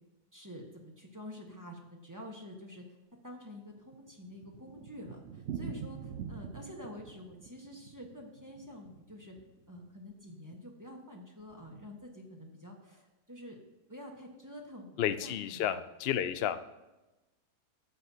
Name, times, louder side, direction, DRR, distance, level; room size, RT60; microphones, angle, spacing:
voice 1, 0.3-2.9 3.2-9.3 9.7-13.6 13.9-15.7, left 1 dB, 15° right, 0 dB, 1.1 m, -48 dB
Thunder, 3.6-9.9 10.1-10.2 10.5-10.6 10.8-10.9 11.5-11.8, right 7 dB, 60° right, 0.9 m, -45 dB
voice 2, 15.0-16.6, left 10 dB, 90° left, 10 dB, 0.5 m, -31 dB
12.0 x 8.3 x 2.8 m, 1.0 s
omnidirectional pair, 1.7 m